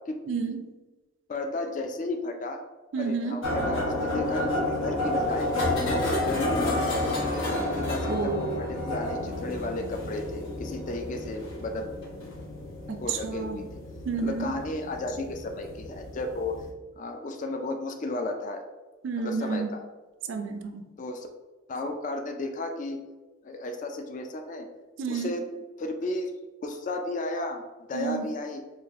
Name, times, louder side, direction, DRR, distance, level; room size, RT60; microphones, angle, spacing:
voice 1, 0.3-0.7 2.9-3.5 8.0-8.6 12.9-13.6 14.0-14.5 19.0-19.7 20.3-20.8 25.0-25.4 27.9-28.3, right 5 dB, 65° right, 7 dB, 0.4 m, -31 dB
voice 2, 1.3-2.6 3.0-5.5 5.8-11.9 13.0-13.8 14.2-16.5 17.0-18.6 19.2-19.8 21.0-21.3 21.7-23.0 23.4-24.7 25.1-25.5 25.8-26.3 26.6-27.6 27.9-28.6, left 2 dB, 35° left, 5 dB, 0.3 m, -33 dB
sound 1, 3.4-16.7, left 1 dB, 70° left, 0.9 m, -30 dB
4.9 x 2.5 x 2.4 m, 1.2 s
head